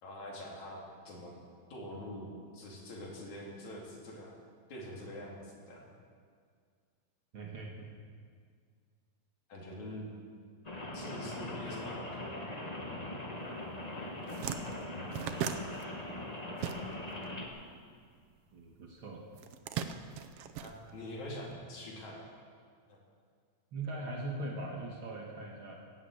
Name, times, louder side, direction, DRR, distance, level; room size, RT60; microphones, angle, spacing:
voice 1, 0.0-1.3 1.7-4.3 4.7-5.8 9.5-10.1 10.9-12.3 12.8-12.9 20.6-22.3 22.9-23.0, left 1 dB, 75° left, -2 dB, 4.0 m, -45 dB
voice 2, 7.3-7.9 14.9-15.6 18.5-19.2 23.7-25.8, right 2 dB, 50° right, -1 dB, 2.1 m, -41 dB
Rain, 10.6-17.5, left 1 dB, 45° left, 0.5 m, -41 dB
sound 1, 13.7-13.8 14.1-17.2 17.5-18.7 19.3-21.4, right 9 dB, 75° right, 1.4 m, -39 dB
17.0 x 8.3 x 7.9 m, 2.1 s
omnidirectional pair, 3.4 m